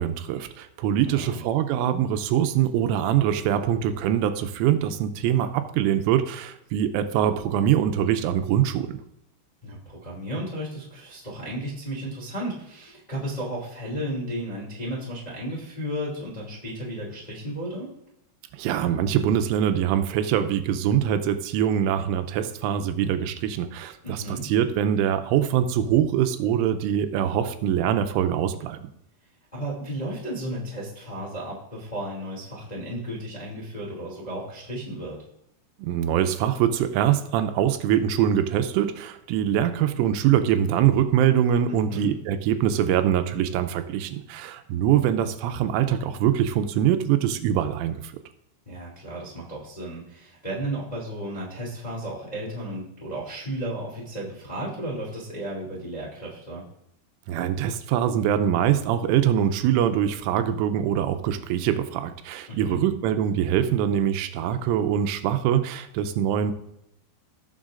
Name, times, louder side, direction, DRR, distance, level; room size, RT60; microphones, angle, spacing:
voice 1, 0.0-9.0 18.5-28.8 35.8-48.1 57.3-66.5, right 10 dB, 85° right, 9 dB, 3.1 m, -23 dB
voice 2, 1.0-1.4 9.6-17.9 24.0-24.5 29.5-35.2 41.7-42.1 48.6-56.6 62.5-62.8, right 1 dB, 20° left, -4 dB, 1.0 m, -34 dB
17.0 x 7.1 x 2.5 m, 0.80 s
omnidirectional pair, 5.7 m